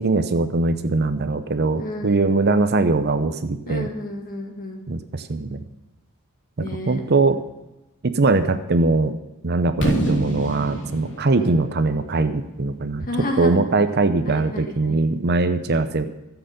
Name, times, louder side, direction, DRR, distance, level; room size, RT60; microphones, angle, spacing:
voice 1, 0.0-3.9 4.9-5.6 6.6-7.4 8.0-9.1 9.4-13.1 13.4-16.0, right 3 dB, 50° right, 10 dB, 0.7 m, -21 dB
voice 2, 1.8-2.4 3.7-4.8 6.6-7.0 11.4-11.6 13.0-13.6 14.2-15.0, left 1 dB, 40° left, 2 dB, 2.1 m, -31 dB
Fireworks, 9.8-13.7, right 1 dB, 60° left, 3.3 m, -28 dB
13.5 x 8.1 x 6.7 m, 0.96 s
head